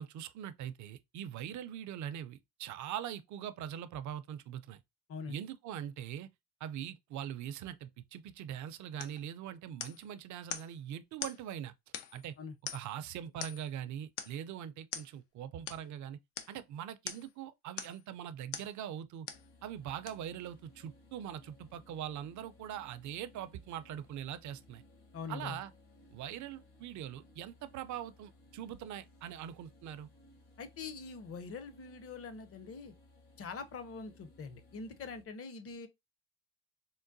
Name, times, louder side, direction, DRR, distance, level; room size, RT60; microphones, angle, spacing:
voice 1, 0.0-4.8 5.3-6.3 6.6-11.7 12.1-12.3 12.7-16.2 16.5-19.3 19.6-24.8 25.3-25.7 26.1-30.1, right 10 dB, 50° right, 0.4 m, -42 dB
sound 1, 9.0-9.2 9.8-10.1 10.5-10.7 11.2-11.4 11.9-12.3 12.7-13.0 13.4-13.7 14.2-14.4 14.9-15.1 15.7-15.8 16.4-16.6 17.1-17.3 17.8-18.1 18.5-18.7 19.3-19.5 20.1-20.2, left 9 dB, 85° left, 0.6 m, -42 dB
sound 2, 19.3-35.2, left 2 dB, 65° left, 1.3 m, -61 dB
voice 2, 25.1-25.6 30.6-32.9 33.4-35.9, left 5 dB, 35° left, 0.6 m, -43 dB
3.7 x 2.1 x 2.5 m
supercardioid pair, 80°, 40 cm